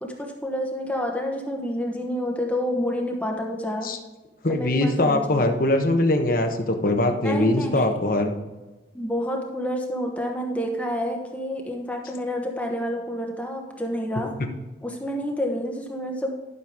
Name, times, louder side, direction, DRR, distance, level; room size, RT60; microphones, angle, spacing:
voice 1, 0.0-3.9 4.5-5.5 7.2-7.9 8.9-14.3 14.8-16.3, equal, 10° left, 1 dB, 1.1 m, -29 dB
voice 2, 4.4-8.3, left 1 dB, 50° left, 5 dB, 1.1 m, -22 dB
12.0 x 6.7 x 3.6 m, 1.2 s
head